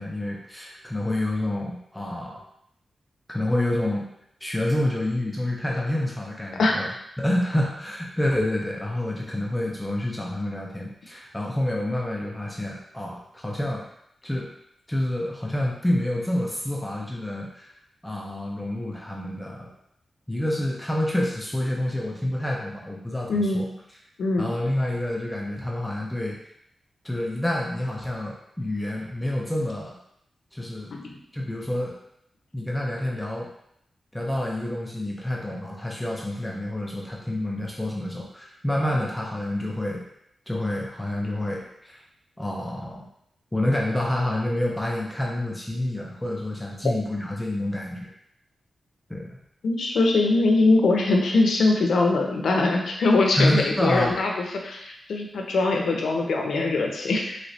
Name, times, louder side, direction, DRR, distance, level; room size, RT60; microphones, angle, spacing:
voice 1, 0.0-2.4 3.3-4.1 4.4-6.9 7.2-13.8 14.2-14.5 14.9-17.7 18.0-19.7 20.3-23.7 24.4-26.4 27.0-30.0 30.5-30.9 31.3-32.0 32.5-33.5 34.1-40.0 40.5-42.0 42.4-43.0 43.5-48.1 49.1-49.4 53.3-54.2, left 1 dB, 5° left, -2 dB, 0.4 m, -28 dB
voice 2, 23.3-23.6 24.2-24.5 30.9-31.2 49.6-54.3 54.6-57.4, left 3 dB, 80° left, 1 dB, 0.5 m, -22 dB
3.2 x 3.1 x 2.7 m, 0.75 s
wide cardioid pair, 165°, 0 cm